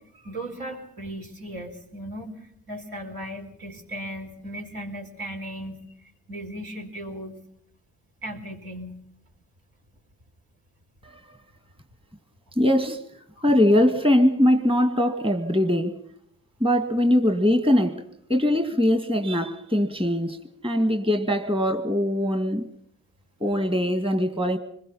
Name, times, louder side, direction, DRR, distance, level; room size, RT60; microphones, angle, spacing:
voice 1, 0.1-7.4 8.2-9.0 13.4-13.5, right 1 dB, 70° right, 4.6 m, -37 dB
voice 2, 12.6-13.0 13.4-16.0 16.6-18.0 18.3-20.4 20.6-22.7 23.4-24.6, left 1 dB, 15° right, 2.0 m, -21 dB
25.0 x 21.5 x 5.7 m
hypercardioid pair, 40°, 37 cm